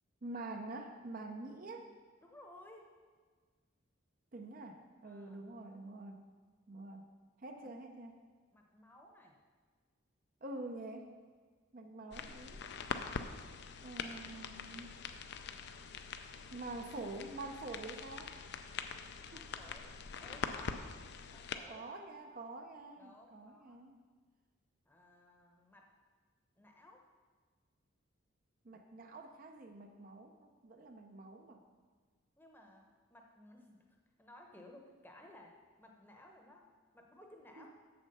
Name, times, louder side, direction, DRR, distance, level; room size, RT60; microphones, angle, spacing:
voice 1, 0.2-1.9 4.3-6.2 6.7-7.0 7.4-8.2 10.4-11.1 11.7-12.6 13.8-15.0 16.5-18.3 19.3-19.4 21.7-24.0 28.6-31.6 37.6-37.7, right 2 dB, 40° right, 4 dB, 0.5 m, -46 dB
voice 2, 2.2-2.9 5.0-5.5 7.6-7.7 8.5-9.3 19.2-19.9 20.2-21.0 21.3-21.9 23.0-23.8 24.9-25.9 26.6-27.0 32.4-33.8 34.2-35.5 35.8-36.6 36.9-37.7, left 1 dB, 10° left, 1 dB, 0.8 m, -58 dB
sound 1, 12.1-21.6, left 5 dB, 55° left, 0.5 m, -44 dB
7.3 x 6.8 x 5.4 m, 1.5 s
head